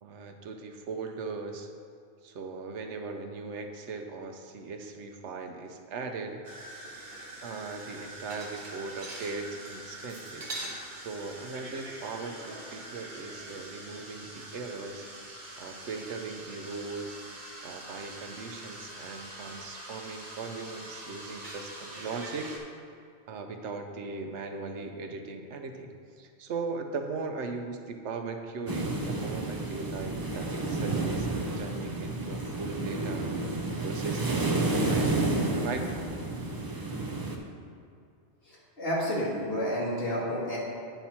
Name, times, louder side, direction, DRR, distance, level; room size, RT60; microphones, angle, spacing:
voice 1, 0.0-1.7 2.2-6.4 7.4-10.5 10.9-15.1 15.6-17.2 17.6-22.5 23.3-33.3 33.8-35.3 35.6-36.1, right 4 dB, 85° right, 5 dB, 1.0 m, -39 dB
sound 1, 6.4-22.6, right 1 dB, 45° right, 1.3 m, -43 dB
sound 2, 28.7-37.4, right 2 dB, 25° right, 0.5 m, -30 dB
voice 2, 38.4-40.6, equal, 55° left, -6 dB, 2.2 m, -30 dB
9.1 x 5.8 x 4.3 m, 2.4 s
omnidirectional pair, 1.2 m